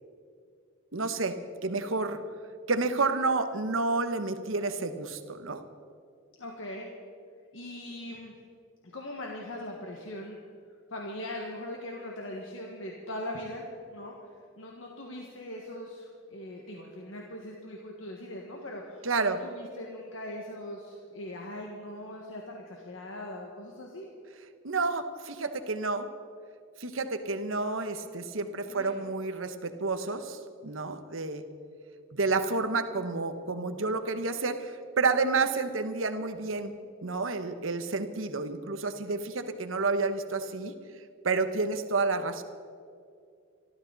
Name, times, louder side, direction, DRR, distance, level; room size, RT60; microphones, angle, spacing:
voice 1, 0.9-1.4 1.6-2.2 2.7-5.6 19.0-19.4 24.6-26.1 26.8-31.4 32.1-36.7 37.0-40.7 41.2-42.4, right 3 dB, 80° right, 9 dB, 1.1 m, -30 dB
voice 2, 6.4-6.9 7.5-8.4 8.8-10.4 10.9-14.2 14.6-24.1 28.7-29.0, left 1 dB, 75° left, -1 dB, 1.7 m, -40 dB
25.0 x 13.5 x 4.1 m, 2.4 s
head